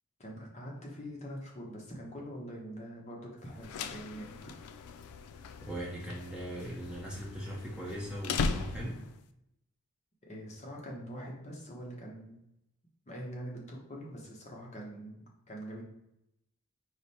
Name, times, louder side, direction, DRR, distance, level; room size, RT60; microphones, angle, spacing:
voice 1, 0.2-4.4 10.3-12.4 13.1-15.8, equal, 30° left, -2 dB, 0.8 m, -44 dB
sound 1, 3.5-9.2, left 4 dB, 80° left, 0.3 m, -38 dB
voice 2, 5.6-9.0, right 1 dB, 5° right, -5 dB, 0.7 m, -39 dB
4.9 x 2.1 x 4.1 m, 0.85 s
head